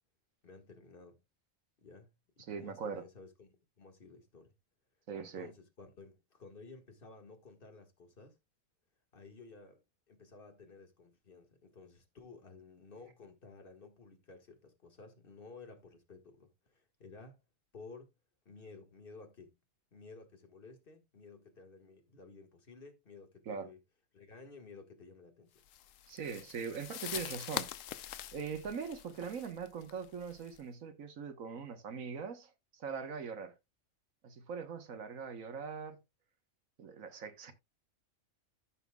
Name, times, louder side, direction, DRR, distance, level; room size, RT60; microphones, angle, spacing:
voice 1, 0.4-1.2 1.8-4.5 5.2-8.4 9.1-9.8 10.1-17.4 17.7-18.1 18.4-19.6 19.9-23.8 24.1-25.6, left 4 dB, 45° left, 1.8 m, -54 dB
voice 2, 2.5-3.0 5.1-5.5 23.5-23.7 26.1-27.7 28.3-33.6 34.2-36.0 36.8-37.5, right 6 dB, 80° right, 1.6 m, -41 dB
sound 1, 25.7-30.6, left 12 dB, 75° left, 1.0 m, -44 dB
14.5 x 5.6 x 2.3 m
omnidirectional pair, 1.4 m